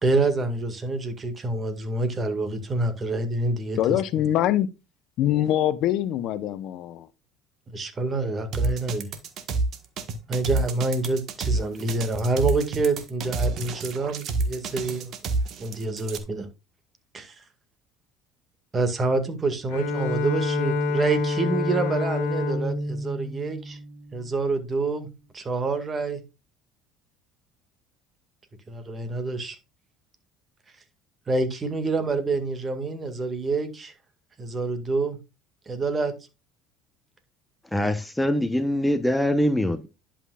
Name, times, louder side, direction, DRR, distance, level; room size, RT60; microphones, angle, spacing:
voice 1, 0.0-3.8 7.7-9.1 10.3-15.1 15.6-16.5 17.1-17.3 18.7-23.8 24.1-25.1 25.3-26.2 28.7-29.6 31.3-33.9 34.4-35.2 35.7-36.1, right 3 dB, 30° right, 1.9 m, -27 dB
voice 2, 3.8-4.7 5.2-7.1, left 12 dB, 60° left, 0.8 m, -24 dB
sound 1, 8.5-16.2, right 3 dB, 55° right, 1.4 m, -28 dB
Bowed string instrument, 19.7-24.4, left 2 dB, 80° left, 1.7 m, -28 dB
voice 3, 37.7-39.9, left 1 dB, 5° left, 0.9 m, -23 dB
11.0 x 5.8 x 2.4 m
supercardioid pair, 85°, 0 cm